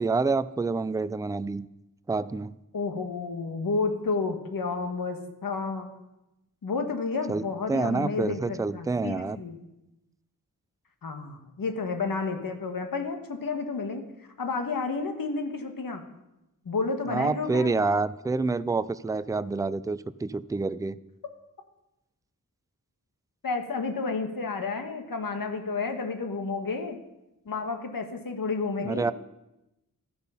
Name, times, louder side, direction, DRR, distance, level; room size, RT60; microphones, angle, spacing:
voice 1, 0.0-1.7 2.1-2.5 7.3-7.4 7.7-9.4 17.1-21.0 28.8-29.1, right 3 dB, 10° right, 16 dB, 0.3 m, -27 dB
voice 2, 2.7-5.9 6.6-9.6 11.0-14.0 14.4-16.0 16.6-17.8 23.4-27.0 27.4-29.1, left 4 dB, 85° left, 5 dB, 1.5 m, -31 dB
13.0 x 8.1 x 5.6 m, 0.93 s
wide cardioid pair, 95°, 33 cm